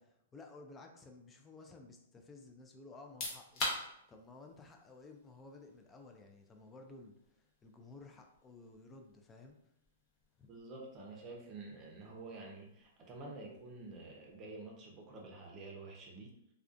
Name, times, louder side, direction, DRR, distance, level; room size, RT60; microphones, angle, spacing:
voice 1, 0.0-9.6 10.4-10.5, left 3 dB, 15° left, 3 dB, 0.3 m, -55 dB
sound 1, 3.0-15.6, left 2 dB, 40° left, 0.8 m, -48 dB
voice 2, 10.5-16.3, right 3 dB, 30° right, -1 dB, 0.6 m, -49 dB
2.3 x 2.2 x 2.5 m, 0.81 s
hypercardioid pair, 125°, 0 cm